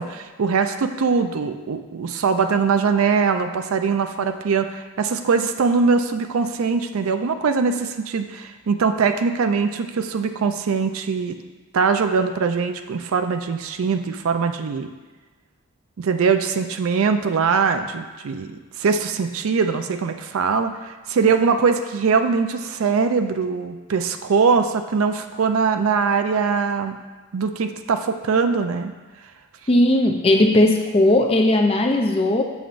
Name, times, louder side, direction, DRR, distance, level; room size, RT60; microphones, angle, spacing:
voice 1, 0.0-11.4 11.7-14.9 16.0-27.0 27.3-28.9, right 5 dB, 70° right, 7 dB, 0.4 m, -22 dB
voice 2, 29.7-32.4, left 1 dB, 25° left, 3 dB, 0.5 m, -17 dB
7.1 x 7.0 x 2.5 m, 1.3 s
head